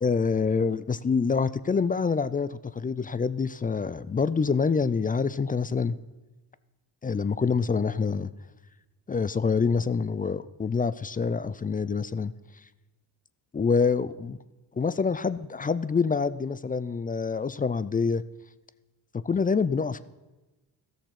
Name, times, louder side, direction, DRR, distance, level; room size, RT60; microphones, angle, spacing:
voice 1, 0.0-6.0 7.0-8.3 9.1-12.3 13.5-14.4 14.8-18.2 19.2-20.1, left 5 dB, 20° left, 17 dB, 0.3 m, -26 dB
14.0 x 6.7 x 5.8 m, 1.1 s
cardioid pair, 70°, 46 cm